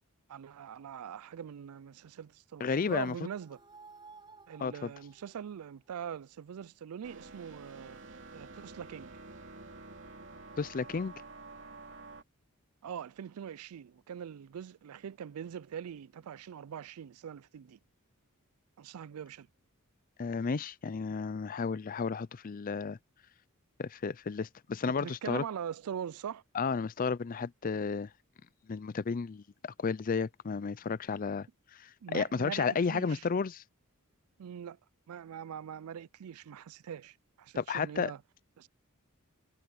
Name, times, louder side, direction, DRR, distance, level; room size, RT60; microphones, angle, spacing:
voice 1, 0.3-3.6 4.5-8.0 8.3-9.1 12.8-17.8 18.8-19.5 25.0-26.4 32.0-33.3 34.4-34.8 35.1-38.2 38.6-38.7, right 8 dB, 85° right, 0.4 m, -42 dB
voice 2, 2.6-3.1 4.6-4.9 10.6-11.1 20.2-23.0 23.8-25.4 26.5-28.1 28.7-31.5 31.7-33.6 37.6-38.1, left 5 dB, 40° left, 0.4 m, -32 dB
sound 1, 2.6-6.0, right 3 dB, 20° right, 5.2 m, -56 dB
sound 2, 7.0-12.2, right 3 dB, 60° right, 2.9 m, -49 dB
head